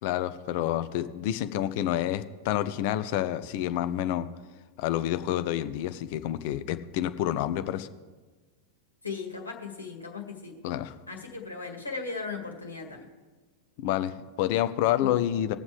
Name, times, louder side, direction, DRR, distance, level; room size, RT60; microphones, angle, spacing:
voice 1, 0.0-4.3 4.8-7.9 10.6-10.9 13.8-15.5, left 12 dB, 50° left, 11 dB, 0.6 m, -28 dB
voice 2, 9.0-10.6 11.1-13.1, left 4 dB, 80° left, 1 dB, 1.9 m, -37 dB
20.5 x 7.2 x 3.4 m, 1.3 s
figure-of-eight pair, 90°, 0 cm